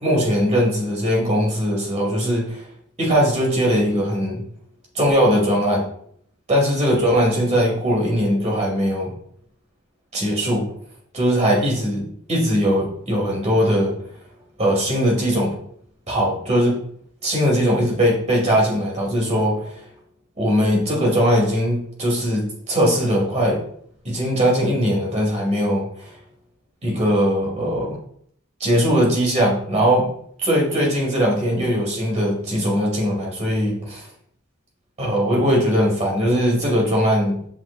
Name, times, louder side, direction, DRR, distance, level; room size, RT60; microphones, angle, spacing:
voice 1, 0.0-2.6 3.0-4.4 4.9-5.9 6.5-9.1 10.1-10.6 11.1-12.0 12.3-13.9 14.6-15.5 16.1-16.8 17.2-19.7 20.4-23.6 24.0-26.1 26.8-28.0 28.6-30.1 30.4-34.1 35.0-37.5, equal, 30° right, -2 dB, 2.3 m, -20 dB
7.8 x 5.6 x 2.3 m, 0.64 s
head